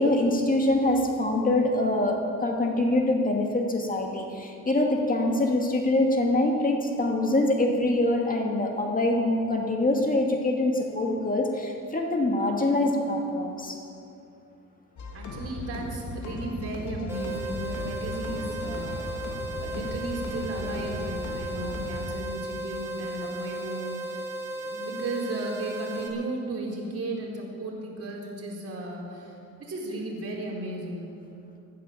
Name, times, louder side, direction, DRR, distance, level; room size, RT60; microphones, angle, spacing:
voice 1, 0.0-13.8, left 1 dB, 30° left, 1 dB, 2.3 m, -24 dB
sound 1, 15.0-22.1, left 2 dB, 70° left, 2.7 m, -37 dB
voice 2, 15.1-19.2 19.6-24.2 24.5-31.0, right 1 dB, 50° right, -2 dB, 4.4 m, -35 dB
sound 2, 17.1-26.1, right 1 dB, 10° right, 3.7 m, -35 dB
15.0 x 12.5 x 7.4 m, 2.6 s
cardioid pair, 90°, 30 cm